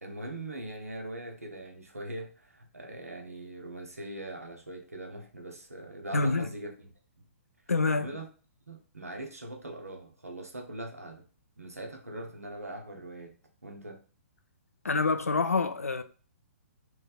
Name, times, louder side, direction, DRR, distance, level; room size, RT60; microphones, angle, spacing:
voice 1, 0.0-6.7 7.2-7.3 7.9-8.3 8.7-11.2 11.6-14.0, right 1 dB, 85° right, 0.8 m, -41 dB
voice 2, 6.1-6.5 7.7-8.1 14.8-16.0, left 3 dB, 80° left, 0.4 m, -26 dB
3.4 x 3.1 x 2.3 m
figure-of-eight pair, 125°, 8 cm